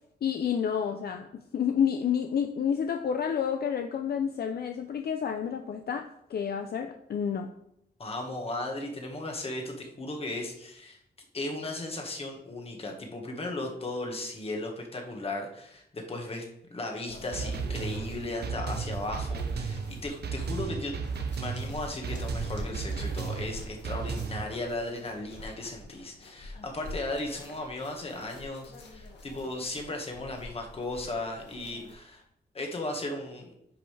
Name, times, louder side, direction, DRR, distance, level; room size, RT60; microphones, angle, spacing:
voice 1, 0.2-1.3 1.5-7.5, left 7 dB, 60° left, 5 dB, 0.5 m, -29 dB
voice 2, 8.0-11.0 11.3-16.4 16.7-20.9 21.4-32.2 32.5-33.5, left 2 dB, 35° left, 2 dB, 1.6 m, -36 dB
sound 1, 17.0-31.9, left 2 dB, 85° left, 1.7 m, -45 dB
sound 2, 17.3-24.5, right 5 dB, 65° right, 0.7 m, -34 dB
10.0 x 5.4 x 3.3 m, 0.77 s
wide cardioid pair, 170°, 18 cm